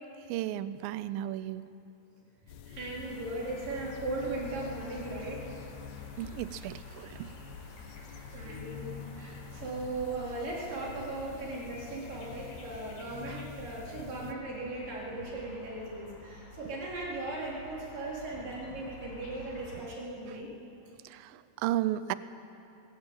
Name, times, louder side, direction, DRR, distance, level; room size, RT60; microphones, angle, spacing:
voice 1, 0.3-1.6 6.2-7.3 13.3-13.4 19.7-19.9 20.2-20.3 21.0-22.2, right 13 dB, 80° right, 15 dB, 2.3 m, -34 dB
sound 1, 2.5-14.4, left 9 dB, 90° left, 2.9 m, -47 dB
voice 2, 2.7-5.5 8.3-20.5, right 2 dB, 60° right, -4 dB, 5.7 m, -38 dB
sound 2, 3.0-19.8, left 2 dB, 60° left, 6.2 m, -50 dB
20.5 x 17.0 x 9.0 m, 2.7 s
omnidirectional pair, 4.4 m